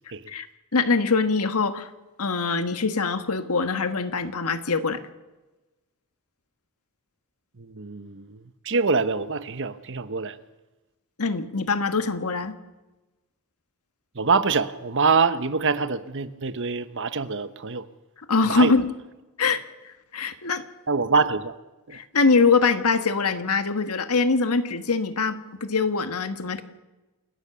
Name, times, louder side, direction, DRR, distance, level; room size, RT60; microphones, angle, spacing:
voice 1, 0.7-1.9 2.2-5.0 11.2-12.5 18.3-18.9 19.4-19.6 20.1-20.6 21.9-26.6, left 4 dB, 90° left, 9 dB, 1.5 m, -23 dB
voice 2, 7.6-8.4 8.6-10.4 14.1-17.8 18.5-18.7 20.9-21.5 21.9-22.0, right 4 dB, 60° right, 13 dB, 1.0 m, -24 dB
28.0 x 13.5 x 7.0 m, 1.1 s
head